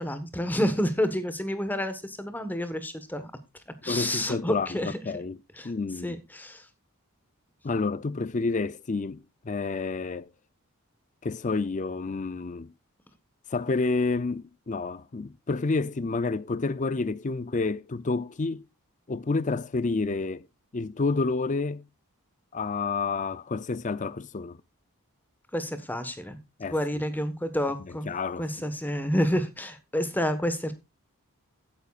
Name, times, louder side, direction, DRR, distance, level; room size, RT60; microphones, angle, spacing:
voice 1, 0.0-3.3 3.8-5.0 5.6-5.7 6.0-6.6 25.5-26.4 26.7-28.1 28.4-30.7, equal, 10° left, 1.3 m, -29 dB
voice 2, 3.9-5.4 5.6-6.2 7.6-10.3 11.2-12.7 13.5-18.6 19.1-20.5 20.7-21.8 22.5-24.6 26.6-26.8 27.8-28.7, left 3 dB, 35° left, 0.5 m, -29 dB
16.0 x 9.6 x 2.4 m
head